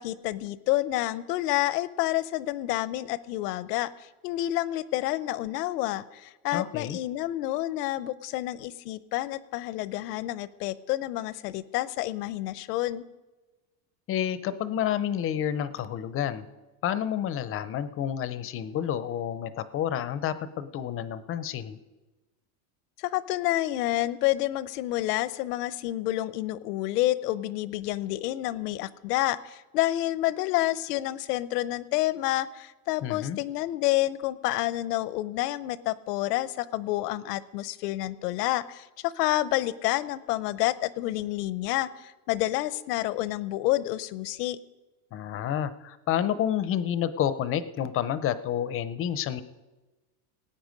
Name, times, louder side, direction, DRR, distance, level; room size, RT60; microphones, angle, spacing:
voice 1, 0.0-13.0 23.0-44.6, left 16 dB, 90° left, 16 dB, 0.8 m, -29 dB
voice 2, 6.5-7.0 14.1-16.5 16.8-21.8 33.0-33.4 45.1-49.4, left 10 dB, 30° left, 14 dB, 0.5 m, -29 dB
18.0 x 8.7 x 5.2 m, 1.2 s
supercardioid pair, 140°, 46 cm